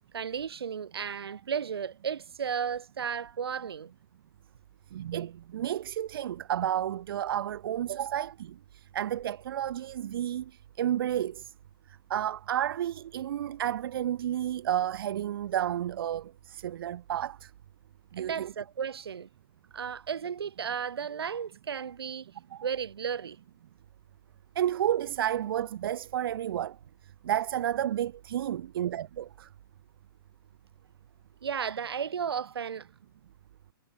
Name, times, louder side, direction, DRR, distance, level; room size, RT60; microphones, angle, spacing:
voice 1, 0.1-3.9 18.2-19.3 19.7-22.3 22.6-23.4 31.4-32.9, right 7 dB, 85° right, 6.4 m, -34 dB
voice 2, 4.9-11.5 12.1-17.5 18.1-18.5 22.5-22.6 24.6-26.8 27.2-29.5, right 11 dB, 70° right, 0.8 m, -31 dB
hypercardioid pair, 135°, 13 cm